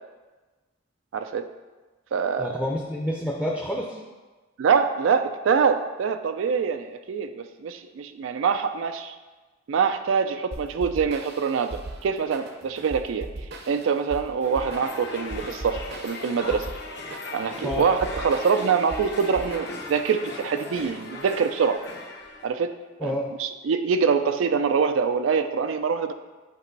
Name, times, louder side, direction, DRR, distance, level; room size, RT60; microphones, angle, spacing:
voice 1, 1.1-1.5 2.1-2.6 4.6-9.1 9.7-11.7 12.0-13.3 13.7-16.7 17.3-21.8 22.4-22.8 23.0-23.1 23.4-26.1, right 6 dB, 85° right, 8 dB, 0.4 m, -24 dB
voice 2, 2.4-4.0 17.6-17.9 23.0-23.3, equal, 10° left, -2 dB, 0.5 m, -28 dB
sound 1, 10.5-20.1, right 2 dB, 55° right, 0.7 m, -39 dB
sound 2, 14.4-22.5, left 2 dB, 60° left, 0.9 m, -38 dB
8.4 x 3.0 x 4.5 m, 1.3 s
head